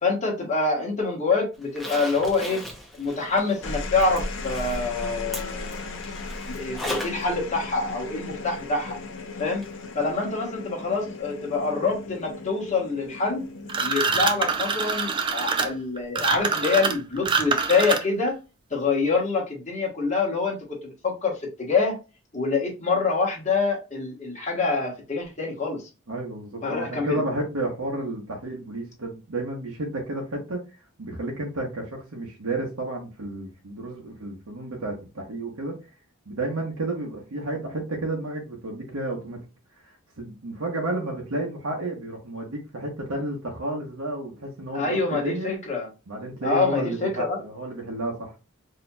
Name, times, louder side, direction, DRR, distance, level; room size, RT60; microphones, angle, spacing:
voice 1, 0.0-2.6 3.0-6.0 6.4-9.0 9.4-9.6 9.9-13.5 13.8-18.3 18.7-22.0 22.3-25.9 26.6-27.2 44.7-45.9 46.4-47.4, left 4 dB, 35° left, 1.2 m, -26 dB
Zipper (clothing), 1.6-7.3 7.6-7.7 9.6-9.7 10.1-10.2, left 1 dB, ahead, 0.7 m, -38 dB
sound 1, 3.4-16.0 17.2-17.6, left 3 dB, 60° left, 0.6 m, -37 dB
sound 2, 13.7-18.3, right 5 dB, 20° right, 0.3 m, -25 dB
voice 2, 26.1-30.6 31.0-35.7 36.3-39.4 39.8-45.5 46.1-48.3, right 2 dB, 85° right, 0.9 m, -31 dB
4.1 x 2.8 x 2.2 m
head